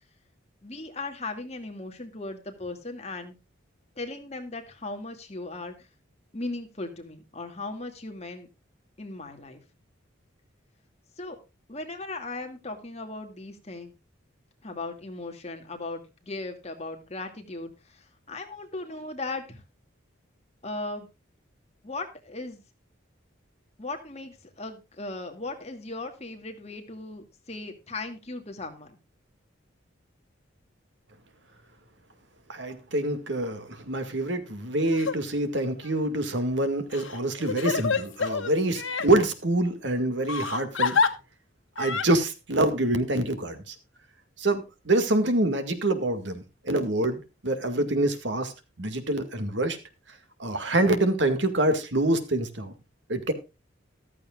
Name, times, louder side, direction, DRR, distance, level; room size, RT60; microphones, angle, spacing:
voice 1, 0.6-3.4 4.0-5.9 6.3-8.5 9.0-9.6 11.2-11.4 11.7-13.9 14.6-19.6 20.6-21.1 21.8-22.6 23.8-29.0, left 2 dB, 30° left, 4 dB, 2.2 m, -37 dB
voice 2, 32.5-41.0 41.8-43.8 44.4-49.8 50.4-52.7 53.1-53.3, right 2 dB, 65° right, 9 dB, 2.0 m, -26 dB
Crying sobbing, 34.8-35.2 35.8-35.9 36.9-39.1 40.3-41.1 41.8-42.1, left 5 dB, 80° left, 1.4 m, -27 dB
14.5 x 13.5 x 2.4 m, 0.26 s
head